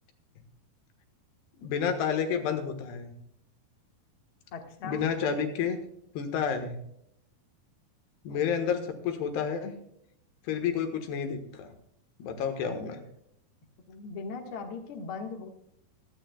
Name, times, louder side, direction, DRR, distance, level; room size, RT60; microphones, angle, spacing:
voice 1, 1.6-3.1 4.8-5.8 6.2-6.8 8.3-9.8 10.5-11.7 12.2-13.0, left 7 dB, 85° left, 6 dB, 3.4 m, -30 dB
voice 2, 4.5-5.0 8.3-8.4 13.9-15.5, left 4 dB, 55° left, 3 dB, 1.6 m, -39 dB
25.5 x 9.2 x 2.3 m, 0.74 s
omnidirectional pair, 4.6 m